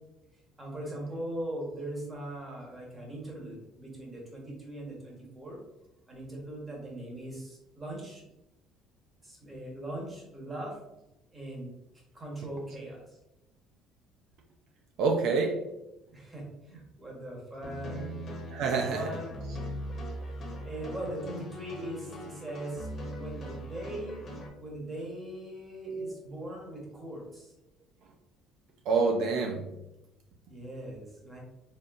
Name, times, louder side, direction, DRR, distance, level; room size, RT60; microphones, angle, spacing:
voice 1, 0.6-5.6 6.1-8.2 9.2-10.8 11.3-11.7 12.1-13.2 16.1-18.2 18.9-19.3 20.6-24.2 24.6-27.5 30.5-31.4, right 1 dB, 15° right, -2 dB, 1.2 m, -40 dB
voice 2, 15.0-15.6 18.5-19.1 25.8-26.2 28.9-29.7, right 4 dB, 60° right, 3 dB, 0.5 m, -27 dB
sound 1, 17.6-24.5, equal, 30° left, 1.1 m, -40 dB
4.2 x 3.8 x 2.5 m, 0.92 s
cardioid pair, 155°, 0 cm